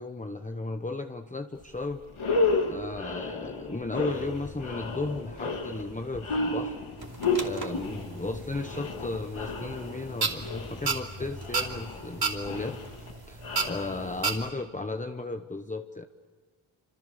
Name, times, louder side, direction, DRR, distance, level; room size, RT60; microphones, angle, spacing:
voice 1, 0.0-2.0 2.7-6.8 7.4-12.8 13.3-16.1, left 2 dB, 15° left, 6 dB, 1.0 m, -35 dB
sound 1, 1.6-1.7 2.1-14.5, left 3 dB, 75° left, 2.9 m, -32 dB
sound 2, 4.1-13.0, left 2 dB, 55° left, 3.9 m, -47 dB
sound 3, 7.0-14.5, right 4 dB, 45° right, 2.8 m, -35 dB
28.5 x 26.5 x 6.8 m, 1.5 s
wide cardioid pair, 85°, 49 cm